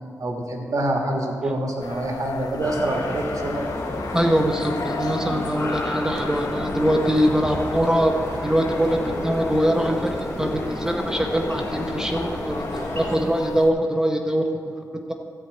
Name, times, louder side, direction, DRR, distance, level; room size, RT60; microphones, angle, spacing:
voice 1, 0.2-3.6, right 1 dB, 60° right, 2 dB, 1.4 m, -26 dB
sound 1, 1.8-13.7, left 4 dB, 75° left, 0.7 m, -36 dB
sound 2, 2.6-13.2, left 1 dB, 45° left, 2.7 m, -31 dB
voice 2, 4.1-14.4 15.1-15.2, equal, 10° right, 3 dB, 0.7 m, -23 dB
12.5 x 4.6 x 8.3 m, 2.3 s
wide cardioid pair, 135°, 7 cm